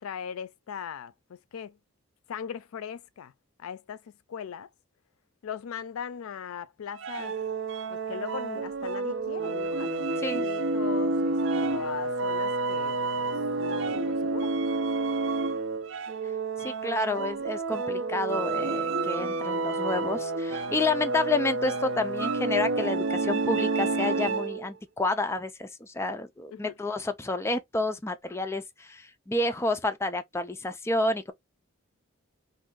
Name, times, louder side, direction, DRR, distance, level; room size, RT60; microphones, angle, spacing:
voice 1, 0.0-1.8 2.3-3.3 3.6-4.7 5.4-7.4 7.9-14.5 20.7-20.9 26.5-26.8, left 7 dB, 85° left, 0.4 m, -39 dB
sound 1, 7.0-24.7, right 3 dB, 60° right, 0.4 m, -29 dB
voice 2, 10.2-10.5 16.6-31.3, left 2 dB, 10° left, 0.3 m, -30 dB
2.6 x 2.5 x 3.7 m
head